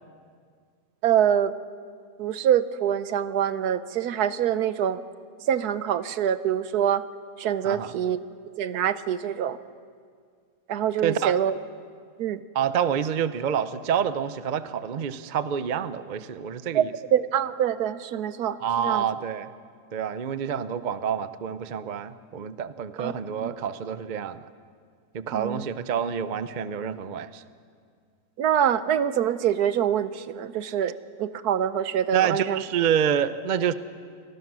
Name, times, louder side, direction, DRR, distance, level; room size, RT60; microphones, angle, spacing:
voice 1, 1.0-1.5 2.2-5.0 5.5-7.0 7.4-8.2 8.6-9.6 10.7-11.5 12.2-12.4 16.7-16.8 17.1-19.1 23.0-23.1 23.4-23.5 25.3-25.6 28.4-32.6, right 9 dB, 70° right, 14 dB, 1.2 m, -25 dB
voice 2, 7.6-7.9 11.0-11.3 12.5-16.9 18.6-19.5 19.9-24.4 25.1-27.4 32.1-33.7, right 8 dB, 50° right, 13 dB, 0.5 m, -27 dB
28.0 x 19.5 x 6.2 m, 2.1 s
omnidirectional pair, 1.8 m